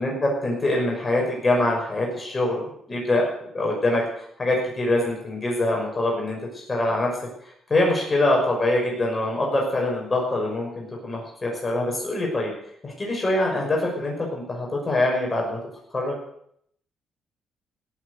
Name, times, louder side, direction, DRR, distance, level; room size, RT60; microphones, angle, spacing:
voice 1, 0.0-2.6 2.9-7.1 7.7-12.5 12.8-15.6 15.9-16.2, left 1 dB, 25° left, -2 dB, 5.9 m, -24 dB
17.5 x 8.4 x 8.4 m, 0.70 s
cardioid pair, 90°, 0 cm